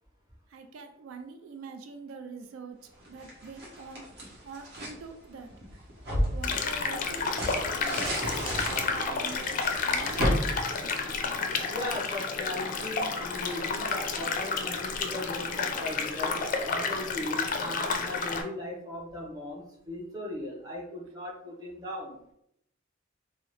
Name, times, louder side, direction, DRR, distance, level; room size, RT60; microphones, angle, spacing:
voice 1, 0.5-2.8 3.1-4.0 4.4-5.8 6.3-10.3, right 4 dB, 90° right, 6 dB, 0.4 m, -44 dB
sound 1, 3.0-5.0 5.5-11.6, equal, 60° right, 1.1 m, -33 dB
sound 2, 6.4-18.4, left 4 dB, 40° left, 0.4 m, -31 dB
voice 2, 11.7-22.2, left 1 dB, 20° right, -3 dB, 0.9 m, -38 dB
3.6 x 2.0 x 3.1 m, 0.75 s
head